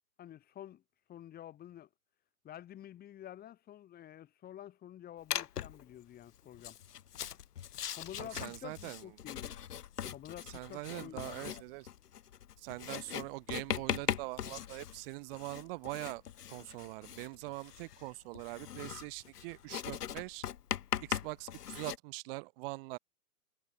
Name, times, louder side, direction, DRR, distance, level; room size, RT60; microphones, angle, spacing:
voice 1, 0.2-0.8 1.1-1.9 2.4-6.8 8.0-9.5 10.1-11.6, left 11 dB, 20° left, 6.6 m, -49 dB
Writing, 5.3-5.8 6.5-22.0, left 10 dB, 65° left, 1.8 m, -40 dB
voice 2, 8.2-9.1 10.5-11.9 12.6-16.2 16.5-20.4 21.0-23.0, right 25 dB, 35° right, 3.5 m, -43 dB
hypercardioid pair, 140°, 49 cm